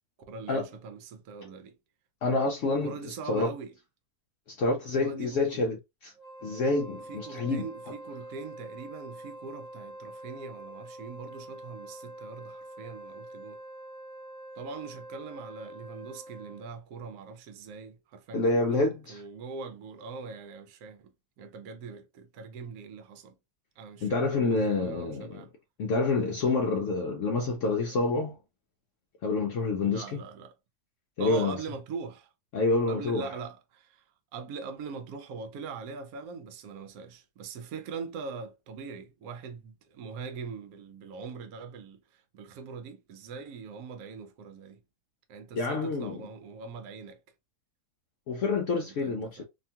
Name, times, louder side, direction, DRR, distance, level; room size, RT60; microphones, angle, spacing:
voice 1, 0.3-1.7 2.8-3.7 5.0-5.6 7.1-13.6 14.6-23.3 23.8-25.5 29.8-30.5 31.2-32.3 32.9-34.0 34.3-44.8 45.3-47.2 48.8-49.4, right 5 dB, 75° right, 1.1 m, -42 dB
voice 2, 2.2-3.5 4.5-5.8 6.0-6.1 6.4-7.6 18.3-19.2 24.0-25.5 25.8-28.4 29.2-30.2 31.2-31.6 32.5-33.3 45.5-46.2 48.3-49.4, left 3 dB, 65° left, 0.8 m, -27 dB
Wind instrument woodwind instrument, 6.1-16.7, right 1 dB, 60° right, 1.3 m, -45 dB
2.8 x 2.3 x 2.7 m
omnidirectional pair, 1.7 m